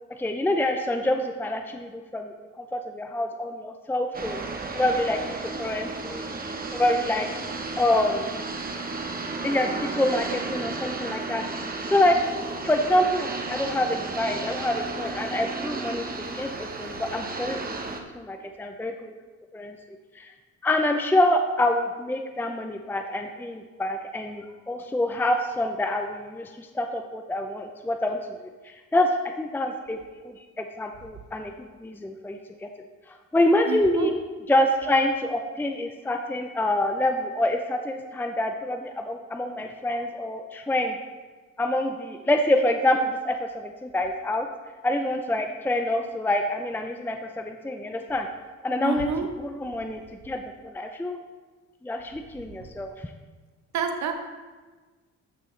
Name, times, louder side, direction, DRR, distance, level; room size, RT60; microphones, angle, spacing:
voice 1, 0.1-4.4 4.7-5.2 5.5-6.3 6.7-7.3 7.8-8.3 9.4-12.2 12.6-16.1 16.3-17.8 18.1-19.1 19.5-19.8 20.1-20.3 20.6-28.2 28.6-29.1 29.4-30.0 30.2-31.5 31.8-32.7 33.1-34.1 34.5-41.0 41.6-44.5 44.8-48.3 48.6-49.1 49.4-51.2 51.8-52.9, left 1 dB, 5° left, 5 dB, 0.6 m, -26 dB
sound 1, 4.1-18.0, right 3 dB, 30° right, 1.0 m, -33 dB
voice 2, 33.7-34.1 48.8-49.3 53.7-54.1, right 6 dB, 65° right, 5 dB, 1.0 m, -28 dB
13.5 x 6.0 x 3.3 m, 1.3 s
cardioid pair, 90°, 30 cm